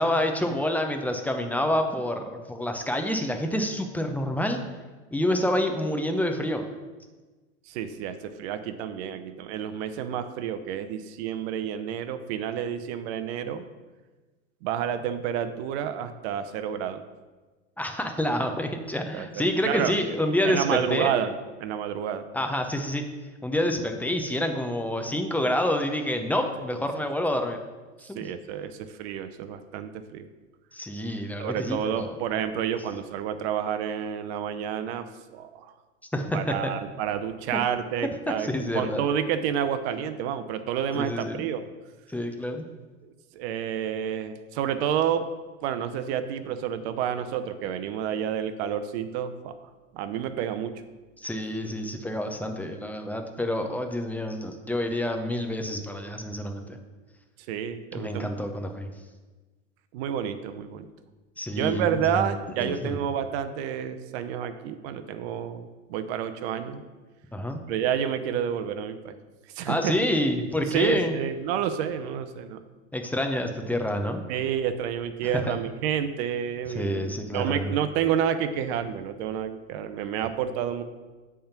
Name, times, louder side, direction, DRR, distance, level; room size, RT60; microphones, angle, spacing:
voice 1, 0.0-4.6 5.1-6.6 17.8-21.2 22.3-23.0 23.4-27.6 28.0-28.2 30.7-32.2 36.1-36.7 38.4-39.0 40.9-41.4 42.1-42.7 51.2-56.8 57.9-58.9 61.4-62.3 62.6-63.0 67.3-67.6 69.7-71.1 72.9-74.2 75.5-75.6 76.7-77.7, left 1 dB, 5° left, 5 dB, 0.8 m, -28 dB
voice 2, 7.7-13.6 14.6-17.0 19.1-19.9 20.4-21.3 21.6-22.3 28.2-30.3 31.4-35.0 35.3-35.7 36.3-41.6 43.0-45.3 45.6-49.5 49.9-50.8 57.5-58.3 59.9-60.9 61.5-66.8 67.7-69.2 69.5-69.9 70.7-72.6 74.3-80.8, right 9 dB, 60° right, 9 dB, 0.8 m, -29 dB
8.5 x 3.6 x 5.8 m, 1.3 s
hypercardioid pair, 95°, 36 cm